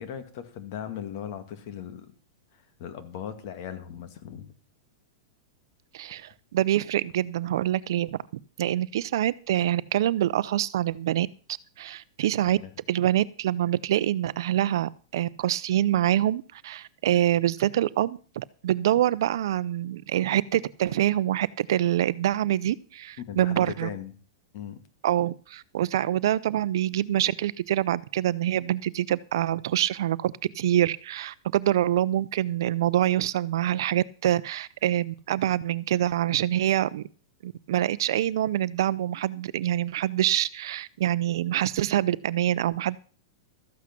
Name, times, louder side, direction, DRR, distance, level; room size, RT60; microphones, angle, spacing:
voice 1, 0.0-2.1 2.8-4.5 12.4-12.7 23.3-24.1 24.5-24.8, left 9 dB, 45° left, 9 dB, 2.1 m, -38 dB
voice 2, 5.9-8.2 8.6-11.3 11.8-12.6 12.9-23.9 25.0-37.0 37.4-43.0, right 12 dB, 70° right, 18 dB, 0.6 m, -25 dB
13.5 x 8.4 x 6.0 m, 0.39 s
supercardioid pair, 155°, 2 cm